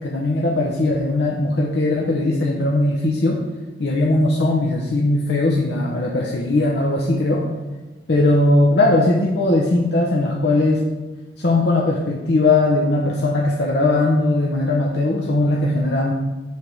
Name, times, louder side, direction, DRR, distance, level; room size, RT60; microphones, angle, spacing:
voice 1, 0.0-3.4 3.8-7.4 8.1-10.9 11.4-16.1, left 2 dB, 70° left, -2 dB, 0.8 m, -19 dB
8.0 x 3.5 x 6.2 m, 1.2 s
head